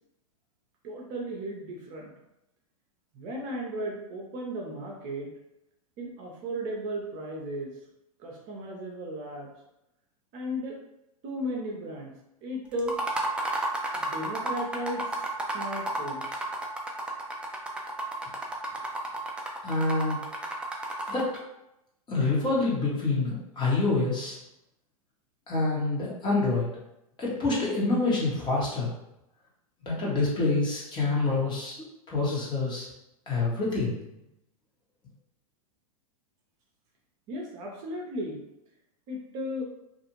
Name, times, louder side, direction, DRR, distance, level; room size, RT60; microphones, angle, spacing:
voice 1, 0.8-2.1 3.1-5.3 6.0-7.7 8.2-9.5 10.3-10.8 11.2-12.1 12.4-13.0 14.0-15.0 15.5-16.4 37.3-38.4 39.1-39.6, equal, 40° right, -1 dB, 0.7 m, -35 dB
sound 1, 12.8-21.4, right 1 dB, 5° right, 0.4 m, -32 dB
voice 2, 19.6-20.2 21.1-21.3 22.1-24.4 25.5-26.7 27.2-28.9 29.8-31.7 32.1-32.9 33.3-34.0, left 3 dB, 25° left, -5 dB, 1.1 m, -26 dB
2.5 x 2.4 x 3.0 m, 0.85 s
hypercardioid pair, 105°, 19 cm